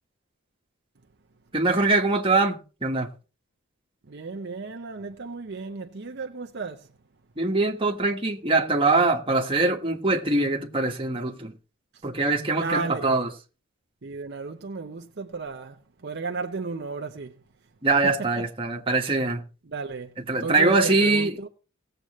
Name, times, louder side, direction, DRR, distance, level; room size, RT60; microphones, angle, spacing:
voice 1, 1.5-3.1 7.4-11.5 12.0-13.3 17.8-19.4 20.3-21.3, right 3 dB, 25° right, 1.5 m, -23 dB
voice 2, 4.1-6.9 12.5-13.2 14.0-17.3 18.0-18.3 19.7-20.1 20.4-21.5, right 4 dB, 50° right, 0.7 m, -34 dB
18.5 x 7.8 x 3.1 m
head